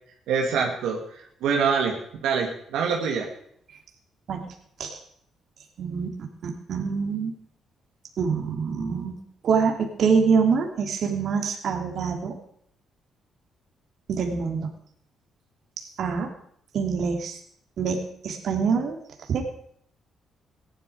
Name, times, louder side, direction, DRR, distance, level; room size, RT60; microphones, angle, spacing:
voice 1, 0.3-3.3, right 6 dB, 90° right, -1 dB, 2.5 m, -25 dB
voice 2, 5.8-7.3 8.2-9.2 9.4-12.3 14.1-14.7 16.0-16.3 16.7-17.4 17.8-19.0 19.3-19.4, right 5 dB, 65° right, 3 dB, 3.1 m, -25 dB
17.0 x 12.0 x 5.1 m, 0.68 s
cardioid pair, 90°, 0 cm